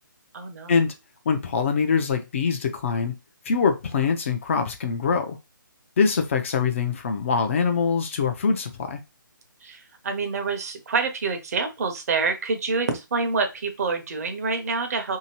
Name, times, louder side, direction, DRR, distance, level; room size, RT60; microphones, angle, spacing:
voice 1, 0.3-0.7 9.6-15.2, right 4 dB, 45° right, 0.7 m, -27 dB
voice 2, 1.3-3.2 3.5-5.4 6.0-9.0, left 5 dB, 40° left, 0.5 m, -23 dB
2.8 x 2.8 x 2.9 m
figure-of-eight pair, 150°, 11 cm